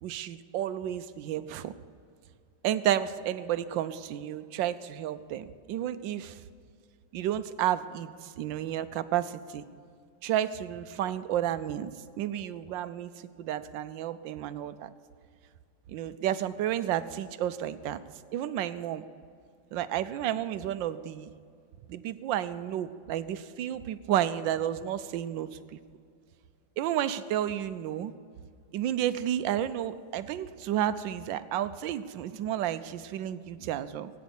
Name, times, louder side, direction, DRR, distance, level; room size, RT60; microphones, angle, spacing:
voice 1, 0.0-1.7 2.6-6.4 7.1-9.6 10.2-11.9 12.2-13.1 13.4-14.9 15.9-18.0 18.3-19.0 19.7-21.3 21.9-25.8 26.8-28.1 28.7-34.1, right 11 dB, 85° right, 13 dB, 1.4 m, -31 dB
18.0 x 9.4 x 7.1 m, 2.2 s
omnidirectional pair, 2.0 m